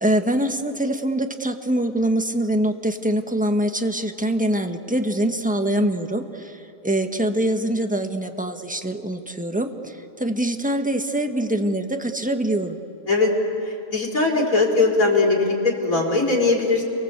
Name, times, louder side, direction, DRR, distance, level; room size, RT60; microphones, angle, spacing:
voice 1, 0.0-12.8, right 1 dB, 5° right, 5 dB, 1.4 m, -24 dB
voice 2, 13.9-16.8, left 3 dB, 90° left, -2 dB, 4.6 m, -20 dB
30.0 x 24.0 x 8.2 m, 2.8 s
omnidirectional pair, 1.4 m